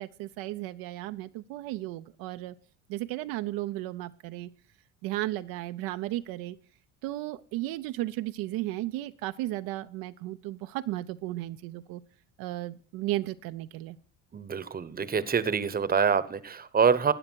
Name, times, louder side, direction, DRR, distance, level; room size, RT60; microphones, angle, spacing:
voice 1, 0.0-2.6 2.9-4.5 5.0-6.6 7.0-12.0 12.4-14.0, right 16 dB, 70° right, 0.6 m, -34 dB
voice 2, 14.3-17.1, right 6 dB, 25° right, 0.9 m, -26 dB
13.0 x 8.7 x 4.6 m
supercardioid pair, 80°, 36 cm